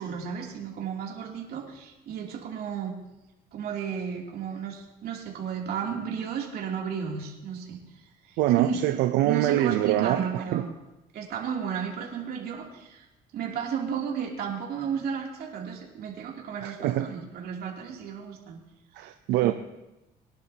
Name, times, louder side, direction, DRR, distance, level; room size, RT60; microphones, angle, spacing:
voice 1, 0.0-3.0 3.5-7.8 8.3-10.7 11.1-13.1 13.3-18.6 19.4-19.5, right 7 dB, 65° right, -1 dB, 2.9 m, -33 dB
voice 2, 8.4-10.6 16.6-17.1 19.0-19.5, right 14 dB, 85° right, 7 dB, 0.6 m, -24 dB
22.0 x 11.5 x 2.8 m, 0.95 s
cardioid pair, 110°, 17 cm